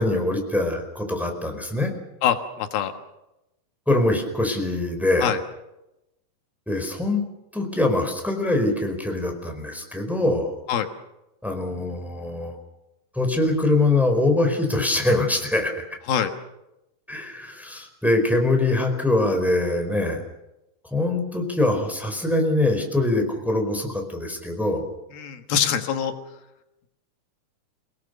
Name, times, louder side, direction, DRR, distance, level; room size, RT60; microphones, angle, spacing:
voice 1, 0.0-1.9 3.9-5.3 6.7-7.2 7.5-10.5 11.4-12.6 13.1-15.8 17.1-20.2 20.9-24.9, left 2 dB, ahead, 3 dB, 4.1 m, -23 dB
voice 2, 2.2-2.9 5.2-5.4 10.7-10.9 16.1-16.3 25.1-26.1, left 9 dB, 85° left, 6 dB, 3.4 m, -24 dB
29.5 x 18.5 x 6.8 m, 0.93 s
omnidirectional pair, 4.2 m